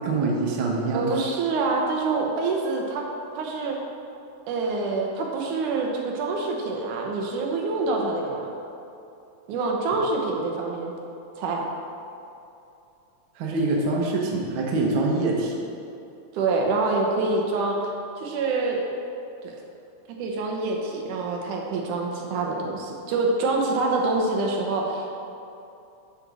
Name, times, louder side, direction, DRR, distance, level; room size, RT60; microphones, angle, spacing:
voice 1, 0.0-1.1 13.4-15.6, right 2 dB, 55° right, -1 dB, 1.5 m, -24 dB
voice 2, 0.9-3.0 3.4-3.8 4.5-8.5 9.5-10.9 11.4-11.6 16.3-17.9 18.2-18.8 19.4-19.5 20.2-25.2, right 3 dB, 85° right, 0 dB, 2.5 m, -26 dB
9.7 x 4.3 x 6.2 m, 2.7 s
omnidirectional pair, 3.5 m